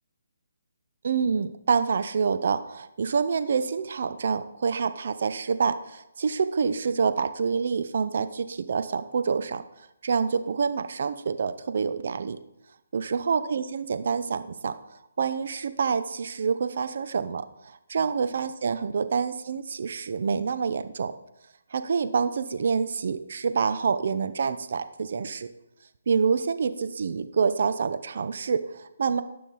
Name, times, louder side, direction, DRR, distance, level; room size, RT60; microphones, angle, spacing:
voice 1, 1.0-9.6 10.0-12.4 12.9-14.7 15.2-21.1 21.7-25.5 26.1-29.2, right 5 dB, 60° right, 11 dB, 0.7 m, -27 dB
12.5 x 5.9 x 4.0 m, 0.85 s
figure-of-eight pair, 150°, 0 cm